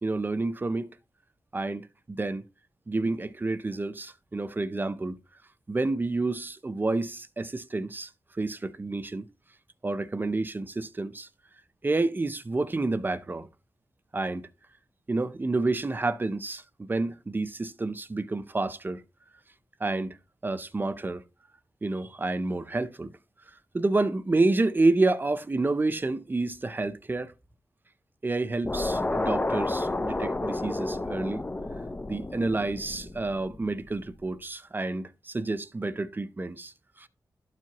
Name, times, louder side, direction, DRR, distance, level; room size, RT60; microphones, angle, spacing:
voice 1, 0.0-0.9 1.5-2.4 2.9-5.2 5.7-8.1 8.4-9.3 9.8-11.3 11.8-13.5 14.1-14.5 15.1-19.0 19.8-20.2 20.4-21.2 21.8-23.1 23.7-27.3 28.2-31.4 32.1-37.1, right 2 dB, 25° right, 0.5 m, -29 dB
sound 1, 28.6-33.9, left 2 dB, 20° left, 0.5 m, -31 dB
12.5 x 4.6 x 2.9 m
wide cardioid pair, 110°, 7 cm